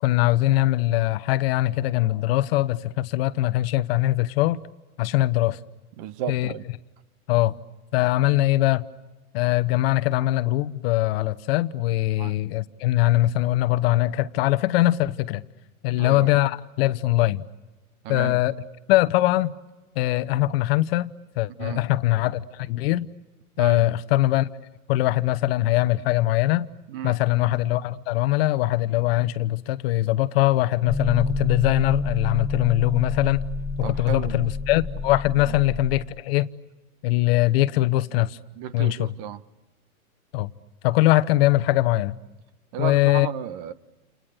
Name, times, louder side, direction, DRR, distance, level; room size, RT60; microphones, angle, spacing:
voice 1, 0.0-4.6 5.0-5.6 6.3-6.5 7.3-7.5 7.9-8.8 9.3-15.4 15.8-17.5 18.1-18.5 18.9-19.5 19.9-21.1 21.4-23.1 23.6-24.5 24.9-26.7 27.0-33.4 33.8-36.5 37.0-38.4 38.7-39.1 40.3-40.5 40.8-42.2 42.8-43.3, left 16 dB, 40° left, 1.1 m, -22 dB
voice 2, 6.0-6.6 12.2-12.4 15.9-16.3 18.0-18.4 21.6-21.8 23.6-23.8 26.9-27.2 33.8-34.5 35.5-35.6 38.6-39.4 42.7-43.7, right 10 dB, 35° right, 1.3 m, -33 dB
sound 1, 30.8-36.0, left 2 dB, ahead, 2.5 m, -29 dB
29.5 x 29.0 x 6.6 m
hypercardioid pair, 130°, 44 cm